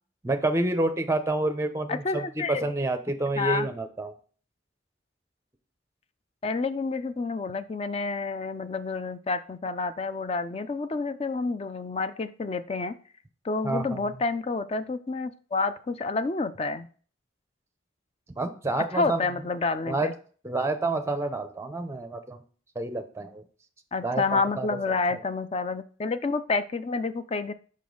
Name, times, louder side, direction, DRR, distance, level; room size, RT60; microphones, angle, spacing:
voice 1, 0.2-4.1 13.6-14.1 18.4-19.3 19.9-20.1 20.4-22.4 22.8-23.4 24.0-25.2, right 2 dB, 15° right, 7 dB, 0.6 m, -29 dB
voice 2, 1.9-2.6 3.4-3.7 6.4-12.9 13.4-16.9 18.9-20.1 23.9-27.5, left 3 dB, 30° left, 11 dB, 0.4 m, -29 dB
5.5 x 5.2 x 3.9 m, 0.41 s
head